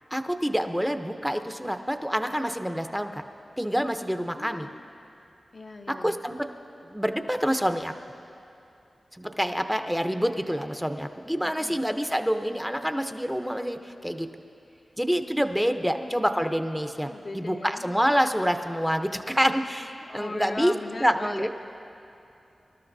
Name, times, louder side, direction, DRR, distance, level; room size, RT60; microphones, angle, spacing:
voice 1, 0.1-3.2 3.6-4.7 5.9-6.5 6.8-7.9 9.1-14.3 15.0-17.1 17.3-20.7 21.0-21.5, equal, ahead, 7 dB, 0.7 m, -27 dB
voice 2, 4.3-4.9 5.5-6.1 11.4-11.8 15.8-16.3 17.1-17.9 20.0-21.5, left 3 dB, 50° left, 4 dB, 0.6 m, -39 dB
25.5 x 12.5 x 2.7 m, 2.7 s
cardioid pair, 55°, 0 cm